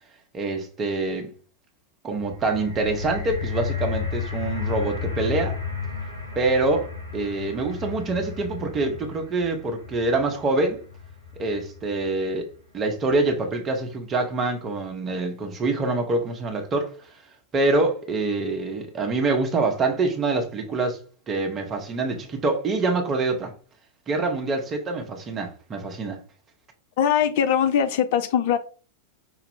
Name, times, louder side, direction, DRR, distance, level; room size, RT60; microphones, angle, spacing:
voice 1, 0.3-1.3 2.0-5.6 6.4-6.9 7.1-10.8 11.4-12.5 12.7-16.9 17.5-21.0 21.3-23.5 24.1-26.2, right 3 dB, 25° right, 0.9 m, -25 dB
sound 1, 2.1-12.3 13.1-13.2, left 6 dB, 85° left, 1.5 m, -33 dB
voice 2, 27.0-28.6, left 8 dB, 50° left, 0.4 m, -21 dB
5.4 x 2.3 x 3.4 m
figure-of-eight pair, 90°, 0 cm